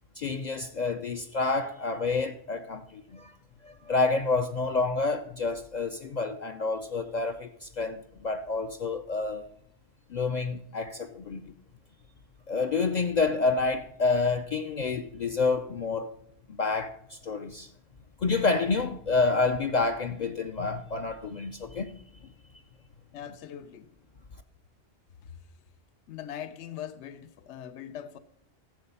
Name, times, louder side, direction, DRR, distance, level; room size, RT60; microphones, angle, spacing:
voice 1, 0.2-3.4 3.6-9.5 10.1-11.5 12.5-16.1 16.5-17.7 18.2-21.9, left 3 dB, 55° left, 0.5 m, -28 dB
voice 2, 23.1-23.9 25.2-25.3 26.1-28.2, left 10 dB, 85° left, 0.9 m, -41 dB
12.5 x 7.4 x 5.5 m
omnidirectional pair, 1.1 m